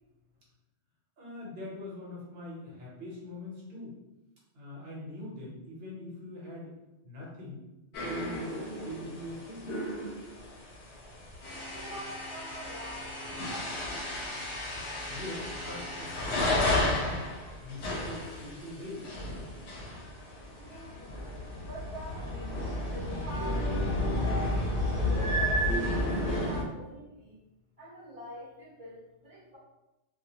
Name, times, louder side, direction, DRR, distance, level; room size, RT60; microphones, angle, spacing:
voice 1, 1.2-4.0 4.5-6.7 7.0-7.6 8.0-9.7 15.1-17.3 17.6-19.1, left 1 dB, 60° right, -5 dB, 1.1 m, -42 dB
sound 1, 7.9-26.6, left 1 dB, 75° left, 0.8 m, -32 dB
voice 2, 11.7-14.6 20.6-21.3 21.7-24.5 25.1-27.4 27.8-29.6, right 1 dB, 35° right, -8 dB, 0.8 m, -46 dB
2.3 x 2.3 x 2.8 m, 0.98 s
omnidirectional pair, 1.2 m